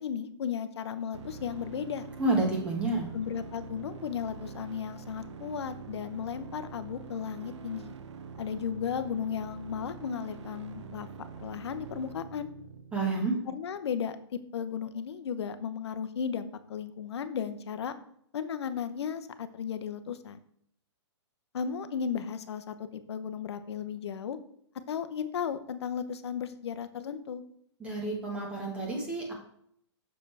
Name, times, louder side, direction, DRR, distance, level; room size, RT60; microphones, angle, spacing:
voice 1, 0.0-2.1 3.1-7.9 8.4-11.1 11.4-12.5 13.5-17.9 18.3-20.4 21.5-24.4 24.9-27.4, left 7 dB, 65° left, 11 dB, 0.8 m, -35 dB
sound 1, 1.1-13.1, right 6 dB, 70° right, 0.7 m, -45 dB
voice 2, 2.2-3.1 12.9-13.4 27.8-29.3, right 2 dB, 5° right, -1 dB, 1.4 m, -29 dB
6.6 x 6.4 x 3.4 m, 0.68 s
hypercardioid pair, 165°, 15 cm